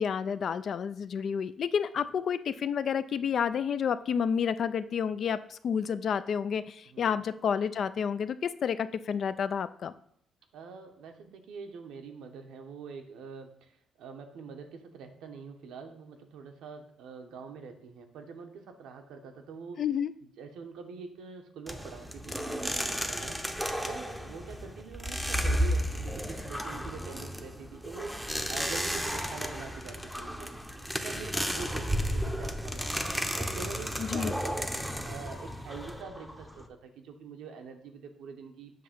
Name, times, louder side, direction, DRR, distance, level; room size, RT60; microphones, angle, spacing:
voice 1, 0.0-9.9 19.8-20.1 34.0-34.3, left 7 dB, 60° left, 14 dB, 0.3 m, -30 dB
voice 2, 10.5-19.8 20.4-33.0 33.3-38.7, right 5 dB, 85° right, 5 dB, 0.8 m, -45 dB
sound 1, 21.7-36.7, equal, ahead, 0.6 m, -33 dB
7.5 x 2.7 x 5.8 m, 0.68 s
cardioid pair, 90°, 0 cm